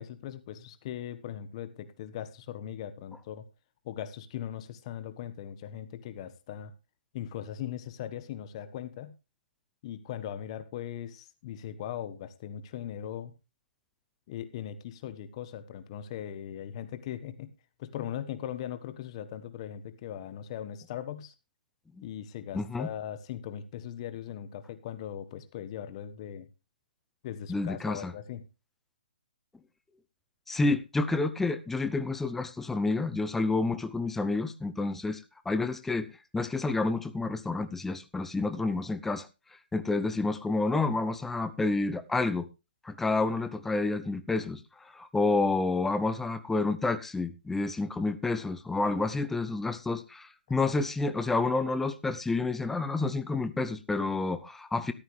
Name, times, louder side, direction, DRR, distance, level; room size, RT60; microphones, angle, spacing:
voice 1, 0.0-3.4 3.8-6.7 7.1-9.1 9.8-13.3 14.3-17.5 17.8-21.3 22.0-26.5 27.2-28.5, left 10 dB, 35° left, 12 dB, 1.4 m, -39 dB
voice 2, 22.5-22.9 27.5-28.1 30.5-35.2 35.5-36.1 36.3-39.3 39.7-42.5 42.8-44.6 44.9-54.9, left 3 dB, 5° left, 11 dB, 0.7 m, -29 dB
13.5 x 11.0 x 3.3 m, 0.28 s
hypercardioid pair, 145°, 5 cm